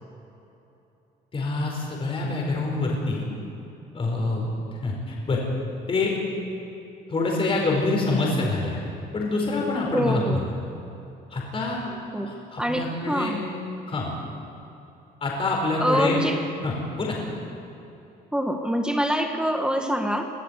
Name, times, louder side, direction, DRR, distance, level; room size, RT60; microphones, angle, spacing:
voice 1, 1.3-3.2 3.9-5.4 5.9-6.1 7.1-8.8 9.1-10.4 11.3-12.0 12.3-13.3 13.9-14.1 15.2-16.2 16.6-17.2, left 3 dB, 35° left, -2 dB, 4.7 m, -26 dB
voice 2, 9.9-10.5 12.1-12.3 12.6-13.4 15.8-16.4 18.3-20.3, equal, 5° right, 4 dB, 1.5 m, -25 dB
23.5 x 14.0 x 8.3 m, 2.9 s
cardioid pair, 110°, 17 cm